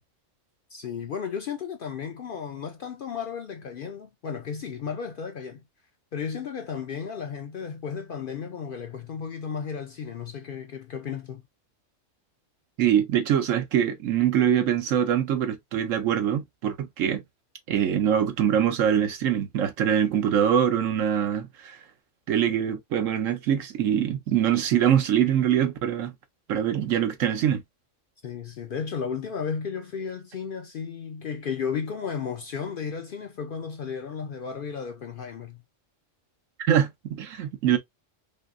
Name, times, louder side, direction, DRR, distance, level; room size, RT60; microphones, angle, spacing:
voice 1, 0.7-5.6 6.1-11.4 28.2-35.6, left 6 dB, 60° left, 0.5 m, -34 dB
voice 2, 12.8-17.2 17.7-21.8 22.3-26.1 26.5-27.6 36.6-37.8, right 9 dB, 80° right, 1.1 m, -23 dB
5.3 x 2.0 x 2.4 m
omnidirectional pair, 1.3 m